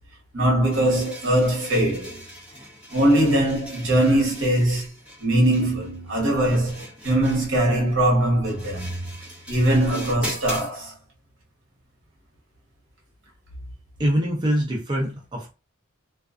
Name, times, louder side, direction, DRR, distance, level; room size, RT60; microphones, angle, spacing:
voice 1, 0.3-2.2 2.9-4.9 5.2-9.0 9.5-10.9, right 1 dB, 65° right, 1.0 m, -21 dB
sound 1, 0.7-10.7, equal, 5° right, 0.9 m, -40 dB
voice 2, 14.0-15.5, equal, 20° right, 0.5 m, -24 dB
2.4 x 2.3 x 2.4 m
head